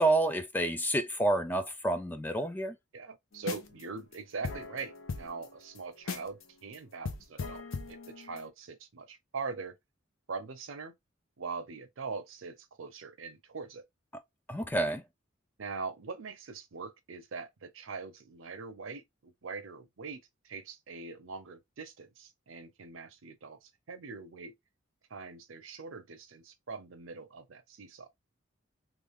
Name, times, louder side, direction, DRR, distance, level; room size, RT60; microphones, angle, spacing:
voice 1, 0.0-2.8 14.5-15.0, right 2 dB, 10° left, 0.3 m, -29 dB
voice 2, 2.9-9.7 10.3-10.9 11.4-13.8 15.6-24.5 25.1-28.1, right 4 dB, 75° right, 0.7 m, -42 dB
sound 1, 3.4-3.8 4.1-4.2 4.4-6.4 6.7-6.8 7.0-8.5, left 4 dB, 75° left, 0.6 m, -39 dB
3.2 x 2.4 x 3.4 m
head